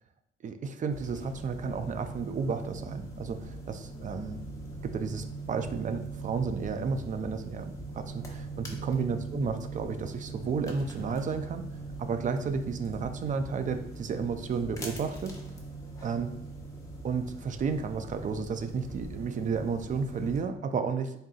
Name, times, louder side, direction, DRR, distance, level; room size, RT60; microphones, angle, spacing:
voice 1, 0.4-4.4 4.8-11.7 12.0-15.3 16.0-16.3 17.0-21.1, right 5 dB, 40° right, 9 dB, 0.4 m, -32 dB
sound 1, 0.9-20.4, right 3 dB, 15° left, 0.9 m, -41 dB
3.8 x 3.8 x 2.4 m, 0.81 s
cardioid pair, 90°, 20 cm